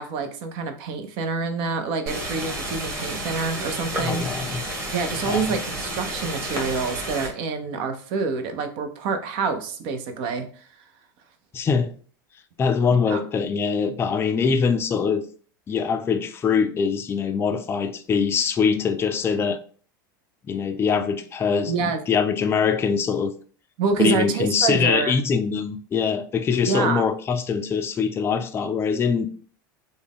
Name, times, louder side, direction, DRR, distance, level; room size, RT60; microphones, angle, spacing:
voice 1, 0.0-4.3 4.9-10.7 13.1-13.2 21.7-22.0 23.8-25.1 26.7-27.0, right 5 dB, 55° right, 0.6 m, -27 dB
sound 1, 2.1-7.3, right 1 dB, 25° right, 1.5 m, -31 dB
voice 2, 4.0-4.6 5.2-5.5 11.5-11.9 12.6-15.2 15.7-19.6 20.5-23.3 24.0-29.3, left 6 dB, 20° left, 0.3 m, -23 dB
3.4 x 2.1 x 3.5 m
hypercardioid pair, 95°, 11 cm